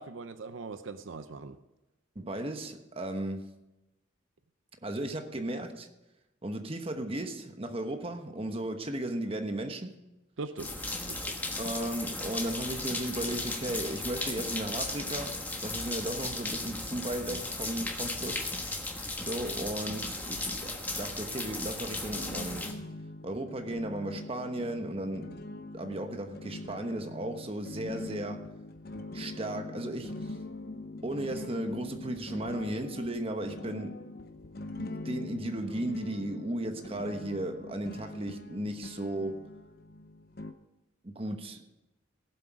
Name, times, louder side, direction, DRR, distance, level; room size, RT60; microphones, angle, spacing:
voice 1, 0.0-1.6 10.4-10.7 11.1-11.4, right 4 dB, 75° right, 0.6 m, -41 dB
voice 2, 2.1-3.5 4.8-5.9 6.4-10.0 11.6-18.5 19.2-22.7 23.2-25.4 25.7-28.5 29.1-30.4 31.0-34.1 34.8-39.5 41.0-41.6, right 1 dB, 30° right, 1.1 m, -35 dB
sound 1, 10.6-22.7, left 2 dB, 10° left, 1.2 m, -36 dB
sound 2, 22.1-40.5, left 2 dB, 50° left, 0.8 m, -43 dB
17.5 x 7.8 x 4.8 m
head